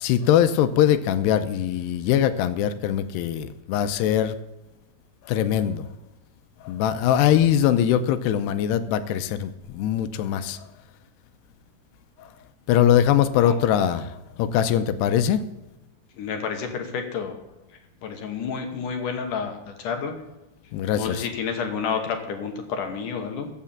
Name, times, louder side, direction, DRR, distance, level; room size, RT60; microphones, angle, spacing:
voice 1, 0.0-4.4 5.3-5.9 6.6-10.6 12.2-12.3 12.7-15.4 20.7-21.3, left 10 dB, 80° left, 11 dB, 2.7 m, -22 dB
voice 2, 16.2-17.4 18.0-20.2 21.0-23.5, left 6 dB, 65° left, 5 dB, 2.2 m, -30 dB
15.0 x 6.7 x 7.1 m, 0.99 s
omnidirectional pair, 4.9 m